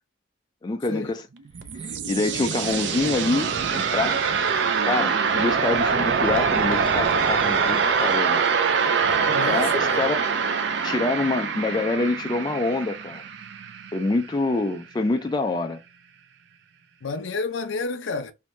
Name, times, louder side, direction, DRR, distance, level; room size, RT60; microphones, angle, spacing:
voice 1, 0.6-1.2 1.8-4.2 4.8-8.6 9.4-10.3 10.8-13.2 13.9-15.8, left 2 dB, 20° left, 0.3 m, -26 dB
sound 1, 1.4-14.2, right 6 dB, 65° right, 0.4 m, -24 dB
voice 2, 9.3-10.0 17.0-18.3, left 4 dB, 80° left, 0.5 m, -30 dB
2.6 x 2.2 x 3.1 m
head